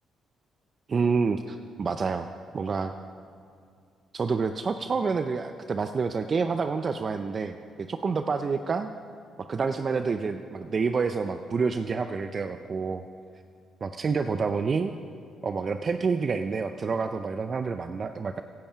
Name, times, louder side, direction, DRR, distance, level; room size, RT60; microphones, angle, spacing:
voice 1, 0.9-2.3 2.5-2.9 4.1-8.9 9.4-13.0 13.8-14.9 15.4-18.4, right 5 dB, 40° right, 8 dB, 0.5 m, -28 dB
16.0 x 10.5 x 5.7 m, 2.4 s
cardioid pair, 90°, 0 cm